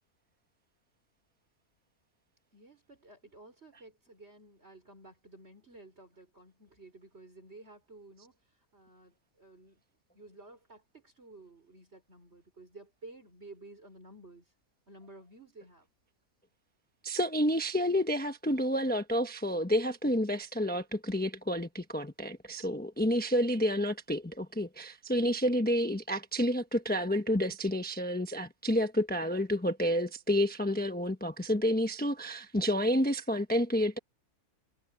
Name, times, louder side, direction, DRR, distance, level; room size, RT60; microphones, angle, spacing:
voice 1, 2.5-9.8 10.1-14.5 14.9-15.9, right 2 dB, 45° right, 5.0 m, -53 dB
voice 2, 17.0-34.0, equal, 5° left, 1.1 m, -29 dB
omnidirectional pair, 1.5 m